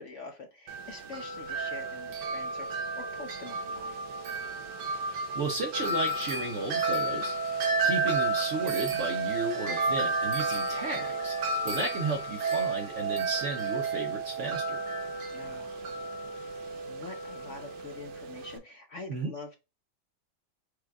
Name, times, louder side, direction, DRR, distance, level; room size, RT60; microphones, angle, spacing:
voice 1, 0.0-4.0 15.3-15.9 16.6-19.6, left 3 dB, 55° left, 3 dB, 0.9 m, -45 dB
Wind chime, 0.7-18.6, right 3 dB, 80° right, 1.4 m, -32 dB
voice 2, 5.1-7.3 7.8-11.4 11.6-14.8 19.1-19.3, right 2 dB, 60° right, 3 dB, 0.8 m, -34 dB
4.8 x 2.4 x 4.5 m, 0.27 s
omnidirectional pair, 1.9 m